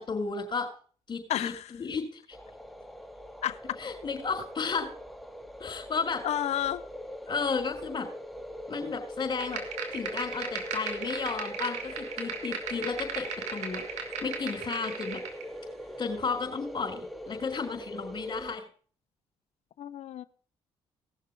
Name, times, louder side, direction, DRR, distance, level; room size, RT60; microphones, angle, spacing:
voice 1, 0.1-0.7 1.1-1.5 1.8-2.4 3.8-4.9 5.6-6.2 7.3-8.1 8.7-9.6 9.9-15.2 16.0-18.6, left 5 dB, 40° left, 4.3 m, -33 dB
voice 2, 1.3-1.7 3.4-3.8 6.2-6.8 19.8-20.2, left 11 dB, 65° left, 0.9 m, -31 dB
sound 1, 2.3-18.6, equal, ahead, 1.4 m, -42 dB
sound 2, 9.4-15.4, right 6 dB, 75° right, 2.6 m, -37 dB
18.5 x 6.6 x 5.1 m
supercardioid pair, 60°, 12 cm